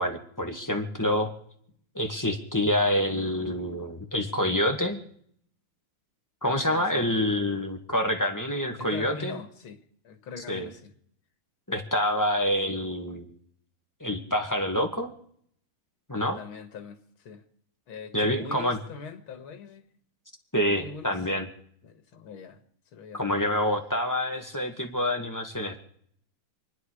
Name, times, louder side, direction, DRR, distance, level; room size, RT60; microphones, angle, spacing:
voice 1, 0.0-1.3 1.9-5.0 6.4-9.4 10.5-10.7 11.7-13.3 14.0-15.1 16.1-16.4 18.1-18.8 20.5-21.5 23.1-25.8, left 1 dB, 10° left, 1.7 m, -27 dB
voice 2, 6.6-7.1 7.4-7.5 8.8-9.8 10.0-10.9 16.3-17.4 17.9-19.9 20.8-21.2 21.8-22.6 22.9-23.2, left 5 dB, 85° left, 2.5 m, -41 dB
28.0 x 9.9 x 4.9 m
omnidirectional pair, 2.2 m